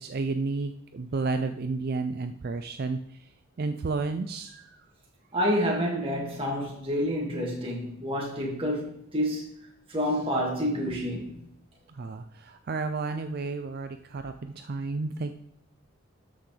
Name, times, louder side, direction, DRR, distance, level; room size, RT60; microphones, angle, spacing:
voice 1, 0.0-3.0 3.6-4.8 11.9-15.3, right 3 dB, 45° right, 8 dB, 0.4 m, -31 dB
voice 2, 5.3-9.4 9.9-11.4, equal, 25° right, -1 dB, 2.1 m, -28 dB
12.5 x 5.9 x 3.3 m, 0.75 s
head